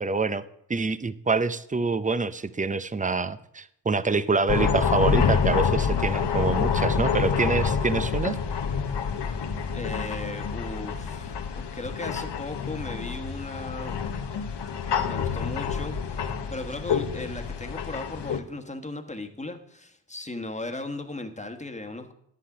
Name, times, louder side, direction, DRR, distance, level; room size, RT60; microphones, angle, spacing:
voice 1, 0.0-0.4 0.7-8.4, right 4 dB, 15° right, 15 dB, 0.6 m, -26 dB
sound 1, 4.5-18.4, left 6 dB, 60° left, 1.1 m, -27 dB
voice 2, 9.7-11.4 11.7-14.0 14.9-16.2 16.5-22.1, left 2 dB, 15° left, 6 dB, 1.4 m, -37 dB
10.0 x 8.6 x 5.0 m, 0.74 s
cardioid pair, 50°, 46 cm